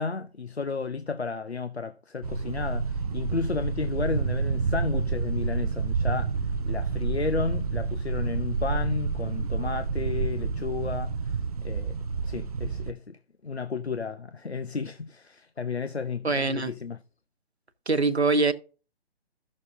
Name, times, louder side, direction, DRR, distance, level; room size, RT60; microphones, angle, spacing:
voice 1, 0.0-6.3 6.7-11.1 11.6-11.9 12.2-13.2 13.4-17.0, left 4 dB, 85° left, 0.8 m, -32 dB
sound 1, 2.2-12.9, right 4 dB, 35° right, 0.5 m, -29 dB
voice 2, 16.2-16.7 17.9-18.5, right 3 dB, 85° right, 1.2 m, -23 dB
15.0 x 6.5 x 2.6 m
figure-of-eight pair, 135°, 32 cm